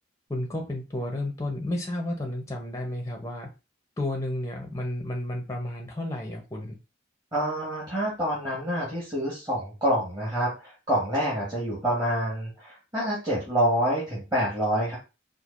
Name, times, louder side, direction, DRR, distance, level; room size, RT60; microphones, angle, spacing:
voice 1, 0.3-3.5 4.0-6.7, left 1 dB, 15° left, 1 dB, 0.6 m, -32 dB
voice 2, 7.3-15.0, equal, 20° right, -7 dB, 1.2 m, -27 dB
4.4 x 2.4 x 2.4 m, 0.29 s
head